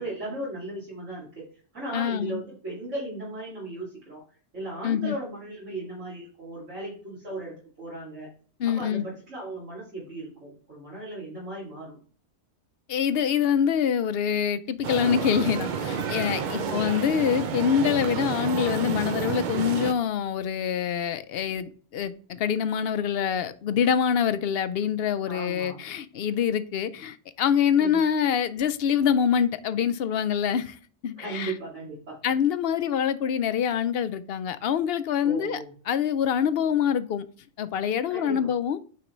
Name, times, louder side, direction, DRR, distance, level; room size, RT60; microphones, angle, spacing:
voice 1, 0.0-1.4 1.7-4.2 4.5-8.3 8.6-12.0 16.5-17.1 25.3-25.8 27.8-28.0 31.1-32.2 35.2-35.7 38.1-38.5, right 2 dB, 75° right, 2.8 m, -36 dB
voice 2, 1.9-2.4 4.8-5.1 8.6-9.0 12.9-30.8 31.0-31.5 32.2-35.6 35.9-37.3 37.6-38.8, left 8 dB, 60° left, 0.7 m, -25 dB
sound 1, 14.8-19.9, right 6 dB, 55° right, 0.5 m, -30 dB
9.2 x 3.9 x 3.1 m
omnidirectional pair, 1.3 m